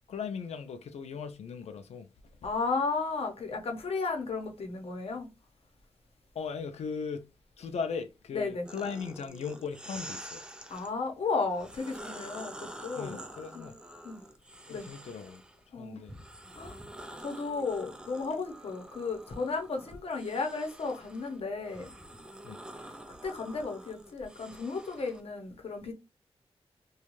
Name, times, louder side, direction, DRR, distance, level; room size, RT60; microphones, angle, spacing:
voice 1, 0.1-2.1 6.3-7.3 7.6-10.4 13.0-13.7 14.7-15.4 15.7-16.2 22.4-22.6, left 6 dB, 85° left, 0.4 m, -38 dB
voice 2, 2.4-5.3 8.3-8.6 10.7-13.3 13.5-13.7 14.0-14.2 14.7-14.9 15.7-16.0 16.5-16.8 17.2-21.9 23.2-25.9, left 4 dB, 65° left, 0.8 m, -34 dB
sound 1, 8.6-10.9 11.5-15.6 16.1-25.2, right 1 dB, 10° right, 0.4 m, -47 dB
2.5 x 2.2 x 3.0 m
wide cardioid pair, 95°, 11 cm